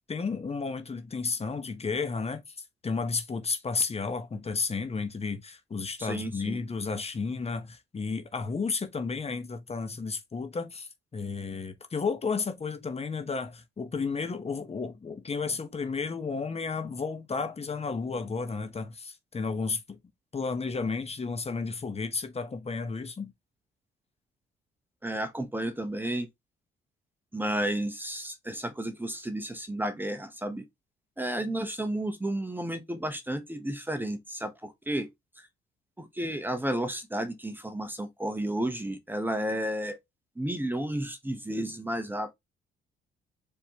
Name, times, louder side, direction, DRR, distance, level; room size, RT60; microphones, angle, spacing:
voice 1, 0.1-20.0 20.3-23.3, left 4 dB, 30° left, 1.0 m, -32 dB
voice 2, 6.0-6.6 25.0-26.3 27.3-30.6 31.2-35.1 36.0-40.0 40.4-42.3, right 1 dB, 10° right, 1.0 m, -32 dB
4.5 x 3.7 x 2.9 m
cardioid pair, 90°, 20 cm